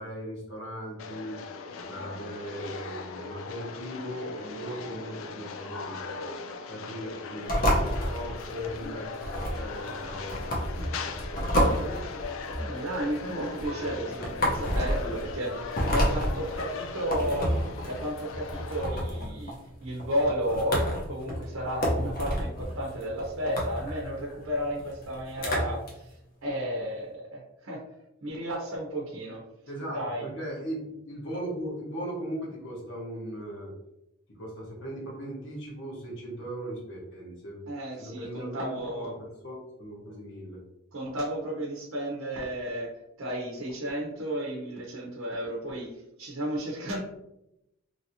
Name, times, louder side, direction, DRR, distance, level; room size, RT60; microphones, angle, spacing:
voice 1, 0.0-1.4 1.8-6.2 6.7-9.1 9.6-12.1 13.7-14.3 15.3-16.5 29.7-33.7 34.4-37.6 38.0-40.6, equal, 60° left, -3 dB, 1.1 m, -39 dB
sound 1, 1.0-18.8, left 4 dB, 80° left, 0.4 m, -39 dB
sound 2, 7.4-25.9, equal, 45° left, 0.8 m, -30 dB
voice 2, 7.6-8.0 12.6-17.5 17.8-19.5 19.8-26.1 26.4-27.8 28.2-29.4 29.9-30.3 37.7-39.1 40.9-42.9 43.2-47.0, equal, 85° right, -3 dB, 0.7 m, -33 dB
3.0 x 2.8 x 2.7 m, 0.88 s
head